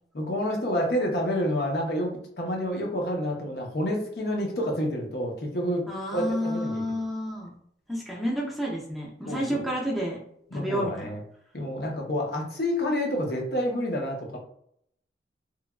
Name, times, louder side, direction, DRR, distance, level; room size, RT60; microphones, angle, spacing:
voice 1, 0.1-5.8 6.1-6.8 9.3-9.6 10.5-11.2 11.5-14.4, equal, 60° left, 0 dB, 0.7 m, -28 dB
voice 2, 5.9-7.5 7.9-10.2 10.5-11.1, equal, ahead, -4 dB, 0.5 m, -30 dB
3.1 x 2.2 x 2.2 m, 0.68 s
head